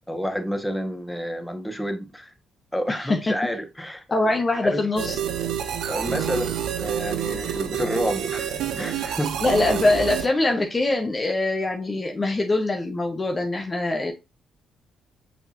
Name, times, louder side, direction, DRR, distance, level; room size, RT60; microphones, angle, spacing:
voice 1, 0.1-2.3 2.7-4.0 4.6-4.8 5.9-9.4, equal, 5° left, 1.9 m, -29 dB
voice 2, 2.9-3.3 4.1-5.5 9.4-14.1, left 2 dB, 30° left, 1.3 m, -23 dB
sound 1, 5.0-10.3, right 9 dB, 65° right, 0.9 m, -28 dB
6.9 x 5.4 x 2.9 m
hypercardioid pair, 45°, 0 cm